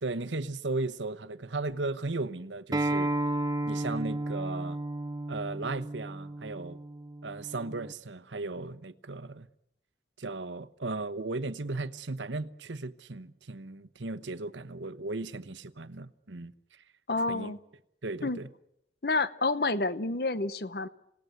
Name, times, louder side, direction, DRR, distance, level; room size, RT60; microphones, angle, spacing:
voice 1, 0.0-3.1 3.6-4.8 5.3-6.8 7.2-9.5 10.2-16.8 17.3-17.5 18.0-18.5, right 3 dB, 85° right, 1.1 m, -36 dB
Acoustic guitar, 2.7-7.9, right 1 dB, 20° right, 0.8 m, -33 dB
voice 2, 17.1-17.6 18.2-18.4 19.0-20.9, left 3 dB, 55° left, 1.0 m, -29 dB
27.5 x 18.0 x 7.9 m
head